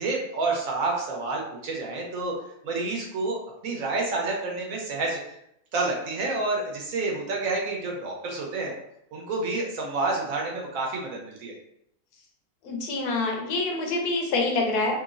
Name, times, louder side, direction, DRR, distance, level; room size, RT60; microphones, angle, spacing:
voice 1, 0.0-2.3 2.6-5.3 5.7-8.7 9.1-11.5, right 3 dB, 70° right, -1 dB, 1.1 m, -29 dB
voice 2, 12.6-15.0, left 2 dB, 85° left, 2 dB, 1.2 m, -26 dB
3.0 x 2.9 x 2.5 m, 0.75 s
omnidirectional pair, 1.6 m